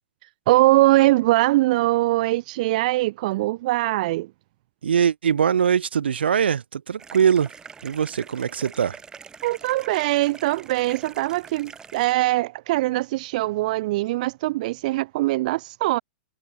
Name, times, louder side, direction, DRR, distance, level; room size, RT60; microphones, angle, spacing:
voice 1, 0.5-4.3 9.4-16.0, right 18 dB, 50° right, 0.8 m, -22 dB
voice 2, 4.8-7.5 7.8-9.0, right 7 dB, 85° right, 3.7 m, -22 dB
sound 1, 7.0-12.1, right 6 dB, 10° right, 4.7 m, -44 dB
hypercardioid pair, 145°, 5 cm